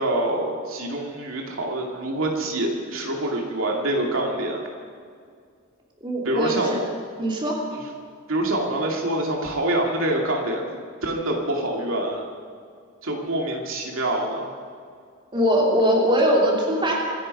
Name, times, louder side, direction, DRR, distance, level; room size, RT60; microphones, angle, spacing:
voice 1, 0.0-4.6 6.2-6.9 8.3-10.7 11.0-12.3 13.0-14.5, right 1 dB, 80° right, 0 dB, 2.4 m, -25 dB
voice 2, 6.0-6.8 7.2-7.6 15.3-17.0, equal, 25° right, -2 dB, 3.0 m, -21 dB
25.0 x 10.0 x 5.4 m, 2.2 s
head